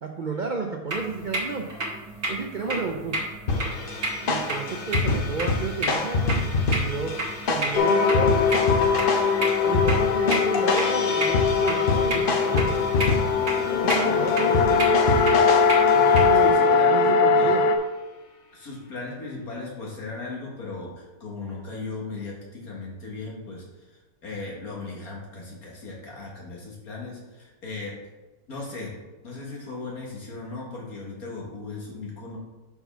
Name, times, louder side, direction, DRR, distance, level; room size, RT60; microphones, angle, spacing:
voice 1, 0.0-1.7 2.3-3.2 4.2-7.1 7.5-8.4 9.6-12.9 13.6-14.9 15.9-17.6, right 4 dB, 70° right, 3 dB, 0.4 m, -32 dB
sound 1, 0.9-16.5, right 1 dB, 40° right, 1.4 m, -33 dB
sound 2, 3.5-16.6, left 3 dB, 45° left, 0.7 m, -27 dB
sound 3, 7.8-17.8, left 5 dB, 85° left, 1.2 m, -21 dB
voice 2, 16.3-17.5 18.5-23.6 24.2-27.9 28.5-28.9 29.2-32.4, left 3 dB, 65° left, -3 dB, 2.2 m, -37 dB
5.5 x 4.7 x 5.6 m, 1.2 s
omnidirectional pair, 1.7 m